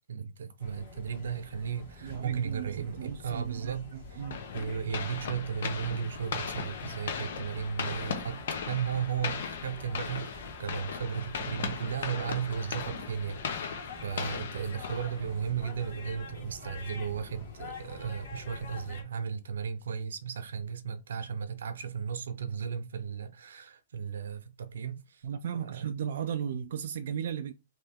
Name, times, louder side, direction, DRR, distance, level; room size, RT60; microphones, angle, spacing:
voice 1, 0.1-4.2 4.5-25.3 25.5-25.9, right 7 dB, 85° right, 0.7 m, -35 dB
sound 1, 0.6-19.0, left 2 dB, 35° left, 1.5 m, -47 dB
voice 2, 2.0-4.4 25.2-27.5, right 8 dB, 50° right, 0.3 m, -36 dB
sound 2, 4.3-15.6, left 6 dB, 55° left, 0.7 m, -38 dB
3.2 x 2.8 x 3.5 m
hypercardioid pair, 180°, 0 cm